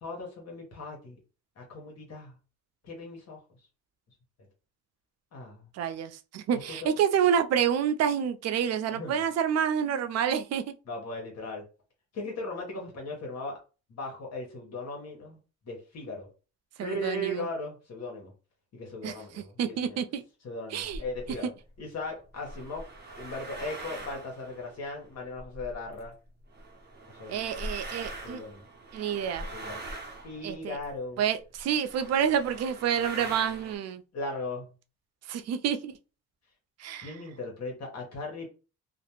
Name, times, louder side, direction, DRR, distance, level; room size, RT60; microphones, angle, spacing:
voice 1, 0.0-1.2 1.6-2.3 2.8-3.4 5.3-5.7 6.5-6.9 8.9-9.2 10.9-11.6 12.1-13.6 13.9-15.4 15.7-16.3 16.8-18.3 18.7-20.0 20.4-21.5 21.8-22.8 23.2-26.1 27.2-27.3 28.2-28.7 29.5-29.8 30.2-31.2 34.1-34.7 37.0-38.5, left 2 dB, 60° left, 1.0 m, -38 dB
voice 2, 5.7-10.7 16.8-17.5 19.0-20.2 20.7-21.0 27.3-28.4 28.9-29.5 30.4-30.8 31.2-34.0 35.3-35.9 36.8-37.1, right 8 dB, 60° right, 0.4 m, -28 dB
sound 1, 20.8-21.4 22.2-26.1 26.5-31.1 31.6-31.7 31.9-33.8, right 1 dB, 35° right, 0.8 m, -42 dB
2.4 x 2.0 x 2.9 m
cardioid pair, 90°, 30 cm